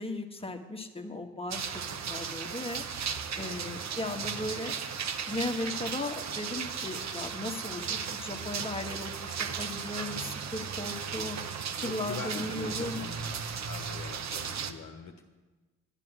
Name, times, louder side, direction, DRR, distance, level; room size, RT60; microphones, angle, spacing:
voice 1, 0.0-1.6 2.1-2.8 3.4-4.7 5.3-11.4 11.8-13.0, left 2 dB, 15° left, 4 dB, 1.5 m, -36 dB
sound 1, 1.5-14.7, right 6 dB, 45° right, 1.1 m, -36 dB
voice 2, 11.8-15.2, left 5 dB, 50° left, 3 dB, 1.3 m, -43 dB
10.5 x 10.0 x 6.2 m, 1.2 s
hypercardioid pair, 55°, 37 cm